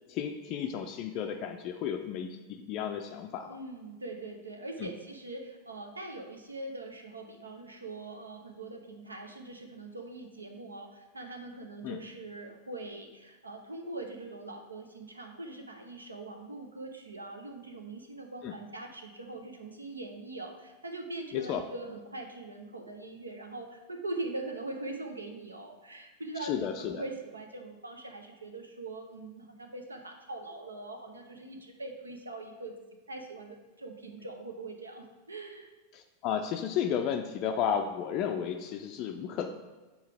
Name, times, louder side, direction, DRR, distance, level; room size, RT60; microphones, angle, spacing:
voice 1, 0.1-3.5 4.8-4.9 11.8-12.0 18.4-18.5 21.3-21.6 26.4-27.0 35.9-39.5, left 8 dB, 40° left, 5 dB, 0.4 m, -33 dB
voice 2, 3.4-32.7 33.1-35.7, right 2 dB, 80° right, 4 dB, 0.7 m, -42 dB
7.4 x 4.6 x 3.4 m, 1.2 s
figure-of-eight pair, 90°, 0 cm